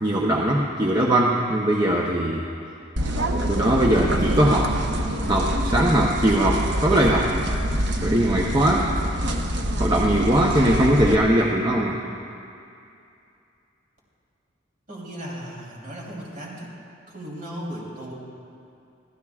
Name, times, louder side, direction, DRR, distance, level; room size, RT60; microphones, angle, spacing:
voice 1, 0.0-2.4 3.5-4.7 5.3-7.3 8.0-8.9 9.8-12.0, right 1 dB, 20° right, -2 dB, 0.8 m, -20 dB
sound 1, 3.0-11.1, equal, 65° right, 1.0 m, -25 dB
voice 2, 14.9-16.7 17.1-18.1, equal, 45° right, -5 dB, 3.6 m, -36 dB
25.0 x 15.0 x 2.4 m, 2.6 s
head